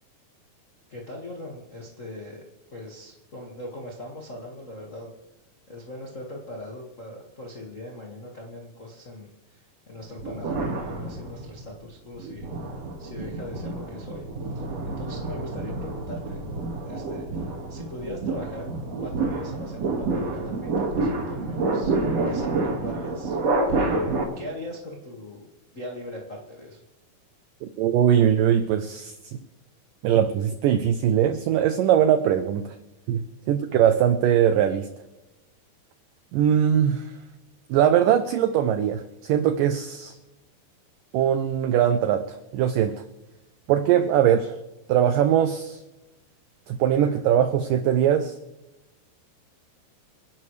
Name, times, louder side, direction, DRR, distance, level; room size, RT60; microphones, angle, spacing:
voice 1, 0.9-2.4 2.7-5.1 5.7-9.3 9.9-12.4 13.0-14.2 14.8-16.4 16.9-18.7 19.0-21.9 22.2-23.4 23.7-24.0 24.4-25.5 25.7-26.8, left 1 dB, 70° left, -2 dB, 0.7 m, -39 dB
sound 1, 10.2-11.6 12.2-24.2, right 3 dB, 45° right, 2.6 m, -28 dB
voice 2, 27.6-29.4 30.0-32.8 33.1-34.9 36.3-37.1 37.7-40.1 41.1-43.0 43.7-44.6 44.9-45.8 46.7-48.4, right 9 dB, 85° right, 9 dB, 1.9 m, -21 dB
28.0 x 11.5 x 3.3 m, 1.0 s
omnidirectional pair, 4.7 m